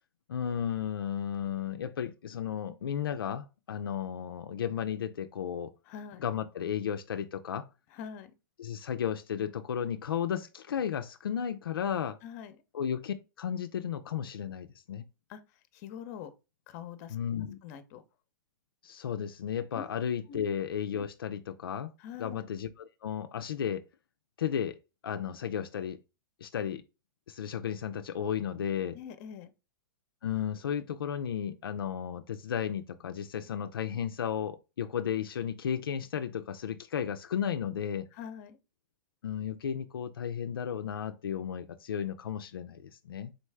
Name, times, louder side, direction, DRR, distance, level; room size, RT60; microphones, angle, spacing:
voice 1, 0.3-5.7 6.2-7.7 8.6-12.2 12.7-15.0 17.1-17.6 18.8-21.9 22.2-23.8 24.4-26.0 26.4-26.8 27.3-29.0 30.2-38.1 39.2-43.3, left 8 dB, 85° left, 0.5 m, -34 dB
voice 2, 5.8-6.3 7.9-8.3 12.2-12.6 15.3-16.3 16.7-17.2 17.6-18.0 19.7-20.0 20.3-20.4 22.0-22.4 28.9-29.5 38.1-38.6, left 8 dB, 45° left, 0.7 m, -44 dB
4.1 x 3.1 x 3.4 m
hypercardioid pair, 135°, 12 cm